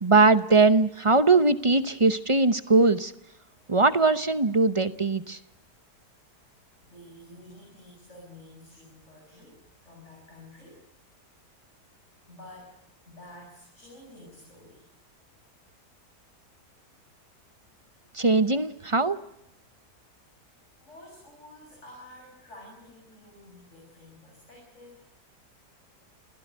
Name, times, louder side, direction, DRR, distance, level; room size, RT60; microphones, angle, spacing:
voice 1, 0.0-3.1 3.7-5.4 18.1-19.2, right 3 dB, 30° right, 12 dB, 0.6 m, -21 dB
voice 2, 6.8-10.8 12.3-12.7 13.1-14.8 20.8-25.0, left 1 dB, 45° left, -1 dB, 7.9 m, -50 dB
28.0 x 16.5 x 8.2 m, 0.86 s
omnidirectional pair, 1.8 m